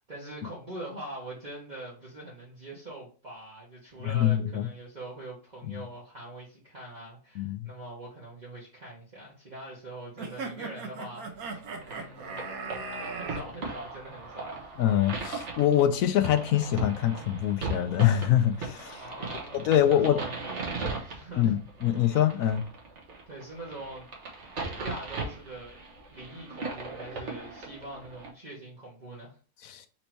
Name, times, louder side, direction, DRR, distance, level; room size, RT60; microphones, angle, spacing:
voice 1, 0.0-12.9 13.1-14.7 19.0-20.4 21.0-21.6 21.9-22.0 23.2-24.1 24.8-25.8 26.1-29.7, right 1 dB, 30° right, 1.2 m, -43 dB
voice 2, 4.0-4.7 5.6-5.7 7.4-7.7 14.8-19.0 19.5-20.2 21.4-22.6 29.6-29.9, left 11 dB, 70° left, 0.9 m, -24 dB
sound 1, 10.2-13.4, right 4 dB, 70° right, 1.3 m, -38 dB
sound 2, 11.6-28.3, right 3 dB, 50° right, 1.3 m, -38 dB
4.4 x 2.8 x 4.4 m
omnidirectional pair, 1.6 m